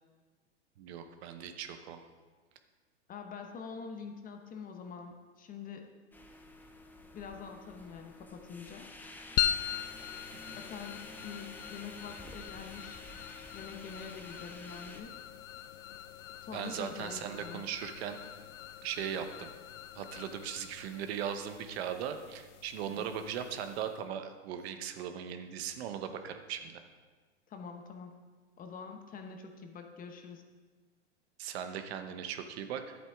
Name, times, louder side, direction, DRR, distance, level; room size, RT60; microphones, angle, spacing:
voice 1, 0.8-2.0 10.5-10.6 16.5-18.2 18.8-19.5 19.9-26.8 31.4-33.1, right 8 dB, 60° right, 8 dB, 0.9 m, -38 dB
voice 2, 3.1-5.9 7.1-8.9 10.6-13.0 13.5-15.1 16.4-17.6 22.9-23.1 27.5-28.2 28.6-30.4, left 5 dB, 25° left, 5 dB, 0.9 m, -45 dB
sound 1, 6.1-15.0, left 2 dB, 5° left, 0.6 m, -50 dB
sound 2, 9.4-24.0, left 11 dB, 75° left, 0.6 m, -41 dB
11.0 x 8.2 x 3.5 m, 1.4 s
hypercardioid pair, 120°, 36 cm